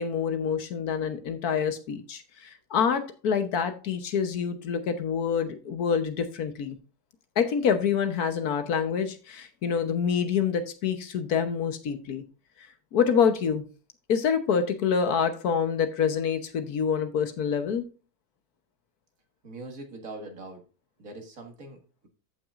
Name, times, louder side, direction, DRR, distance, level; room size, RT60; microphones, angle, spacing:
voice 1, 0.0-6.8 7.4-12.2 12.9-13.6 14.1-17.8, left 7 dB, 70° left, 9 dB, 1.5 m, -26 dB
voice 2, 19.4-20.6 21.0-22.1, right 2 dB, 60° right, 4 dB, 2.2 m, -42 dB
13.5 x 5.9 x 2.5 m, 0.34 s
omnidirectional pair, 1.7 m